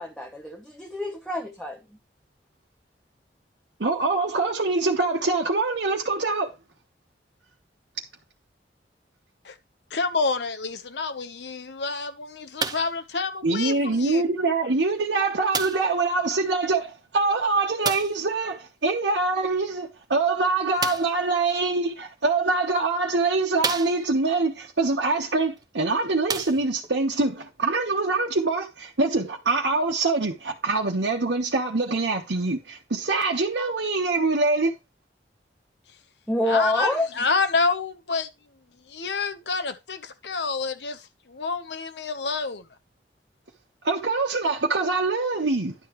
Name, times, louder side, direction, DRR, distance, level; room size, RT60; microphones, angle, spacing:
voice 1, 0.0-1.8 36.3-37.3, left 1 dB, ahead, 0.9 m, -27 dB
voice 2, 3.8-6.5 13.4-34.7 43.8-45.7, right 3 dB, 80° right, 1.1 m, -24 dB
voice 3, 9.9-14.2 36.5-38.3 38.9-41.0 41.3-42.6, left 4 dB, 70° left, 1.0 m, -28 dB
sound 1, 12.6-13.0 13.9-14.0 15.5-16.0 17.8-18.2 20.8-21.2 22.2-22.3 22.9-23.0 23.6-24.3 25.6-25.7 26.2-26.9 27.8-27.9, right 5 dB, 20° right, 0.6 m, -30 dB
11.0 x 6.8 x 3.1 m
head